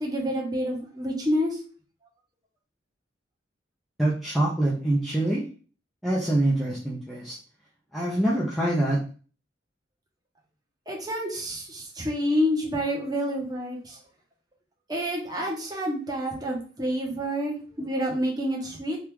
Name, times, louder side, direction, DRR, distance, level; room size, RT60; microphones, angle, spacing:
voice 1, 0.0-1.6 10.9-14.0 14.9-19.0, equal, 20° right, -2 dB, 0.9 m, -28 dB
voice 2, 4.0-5.4 6.0-7.4 7.9-9.0, right 1 dB, ahead, -6 dB, 0.5 m, -25 dB
3.0 x 2.4 x 3.5 m, 0.38 s
head